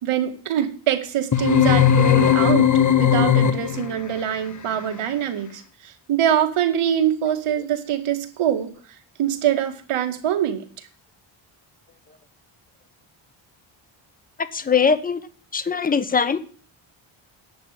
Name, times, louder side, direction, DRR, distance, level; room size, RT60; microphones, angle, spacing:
voice 1, 0.0-2.7 3.0-10.9, right 9 dB, 85° right, 7 dB, 2.2 m, -24 dB
sound 1, 1.3-3.9, left 9 dB, 35° left, 1.2 m, -17 dB
voice 2, 14.5-15.2 15.5-16.4, left 6 dB, 15° left, 13 dB, 1.0 m, -21 dB
11.0 x 7.4 x 9.1 m, 0.43 s
cardioid pair, 110°, 49 cm